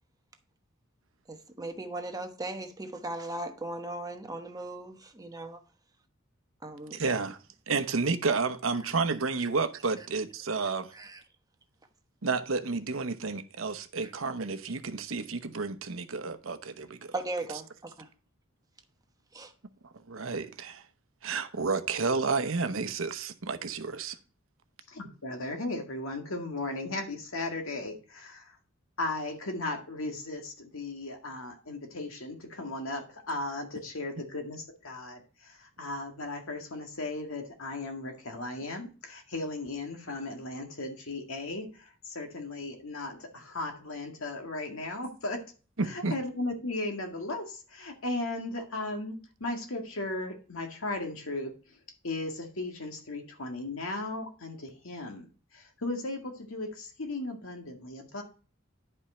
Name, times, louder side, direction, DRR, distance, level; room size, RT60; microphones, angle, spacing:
voice 1, 1.3-5.6 6.6-7.0 10.9-11.2 14.0-14.1 17.1-18.1 19.3-19.5, right 2 dB, 20° right, 1.1 m, -38 dB
voice 2, 6.9-7.4 7.7-10.9 12.2-17.1 20.1-20.8 21.2-24.2 45.8-46.1, right 4 dB, 75° right, 0.9 m, -31 dB
voice 3, 24.9-28.6 29.0-45.4 45.9-51.5 52.0-58.2, left 2 dB, 90° left, 1.9 m, -36 dB
10.5 x 5.3 x 4.3 m
head